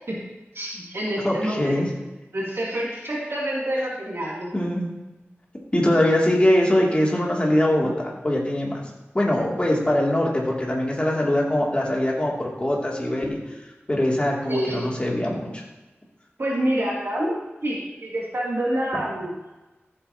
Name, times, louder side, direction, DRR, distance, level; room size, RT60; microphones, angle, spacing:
voice 1, 0.5-1.8 2.3-4.5 14.5-14.8 16.4-19.3, right 1 dB, 70° right, -5 dB, 2.7 m, -27 dB
voice 2, 1.2-1.9 4.5-4.9 5.7-8.8 9.1-13.6 13.9-15.6 18.9-19.0, left 1 dB, 25° left, -3 dB, 2.6 m, -22 dB
14.0 x 8.4 x 2.9 m, 1.1 s
wide cardioid pair, 75°, 4 cm